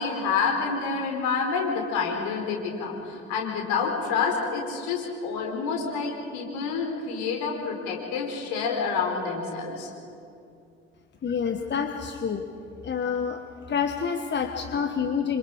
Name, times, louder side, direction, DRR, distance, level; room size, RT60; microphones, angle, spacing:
voice 1, 0.0-9.9, left 5 dB, 65° left, 1 dB, 4.7 m, -28 dB
voice 2, 11.2-12.5 12.8-13.4 13.7-15.4, left 6 dB, 35° left, 6 dB, 1.5 m, -28 dB
27.5 x 26.0 x 5.0 m, 2.5 s
figure-of-eight pair, 55°, 31 cm